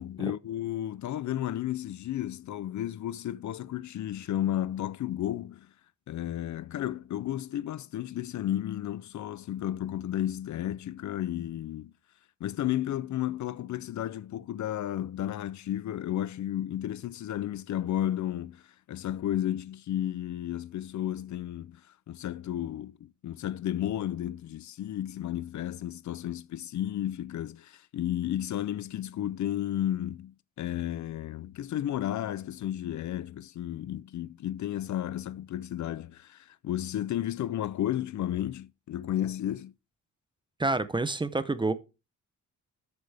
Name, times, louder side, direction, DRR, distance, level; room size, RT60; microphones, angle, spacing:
voice 1, 0.0-5.7 6.1-11.9 12.4-21.8 22.1-39.7, left 12 dB, 65° left, 0.5 m, -33 dB
voice 2, 40.6-41.7, right 2 dB, 15° right, 0.6 m, -28 dB
12.0 x 8.2 x 3.4 m
wide cardioid pair, 175°, 32 cm